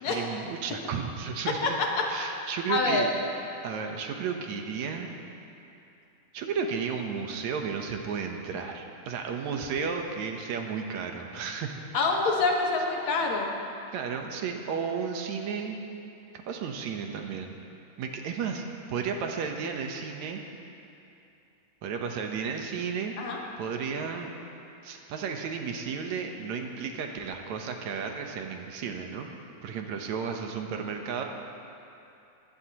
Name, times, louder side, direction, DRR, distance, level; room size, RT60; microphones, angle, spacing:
voice 1, 0.1-1.8 2.1-3.1 3.6-5.1 6.3-11.8 13.9-15.8 16.3-17.6 18.0-18.6 18.9-20.4 21.8-23.1 23.6-24.3 24.8-29.3 29.6-31.2, right 6 dB, 75° right, 3 dB, 2.3 m, -33 dB
voice 2, 2.7-3.1 11.9-13.5 23.2-23.4, left 3 dB, 70° left, 0 dB, 2.7 m, -26 dB
21.0 x 16.0 x 3.0 m, 2.7 s
omnidirectional pair, 3.3 m